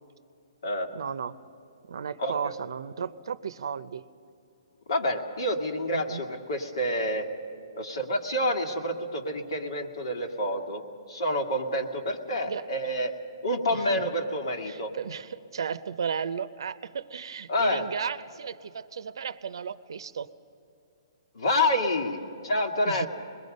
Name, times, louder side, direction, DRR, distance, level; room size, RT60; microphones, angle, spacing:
voice 1, 0.9-1.3 1.9-4.0 5.9-6.2 12.5-12.7 13.7-14.1 14.7-20.3 22.9-23.1, right 6 dB, 70° right, 14 dB, 0.6 m, -34 dB
voice 2, 2.2-2.5 4.9-7.3 7.8-10.8 11.1-13.1 13.4-14.9 17.5-17.9 21.3-23.1, left 1 dB, 75° left, 4 dB, 2.2 m, -28 dB
25.0 x 21.5 x 5.4 m, 2.7 s
hypercardioid pair, 165°, 2 cm